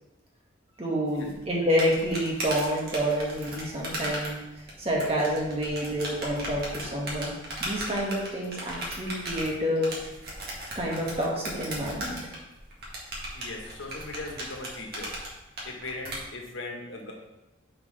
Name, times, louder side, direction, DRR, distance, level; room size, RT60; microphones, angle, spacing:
voice 1, 0.8-4.4 4.8-7.3 7.6-9.9 10.7-12.2, equal, 30° right, -3 dB, 1.8 m, -28 dB
sound 1, 1.2-16.2, right 1 dB, 55° right, 1.9 m, -37 dB
voice 2, 13.3-15.1 15.6-17.1, left 2 dB, 80° left, 1 dB, 1.4 m, -39 dB
9.4 x 5.0 x 3.3 m, 0.98 s
head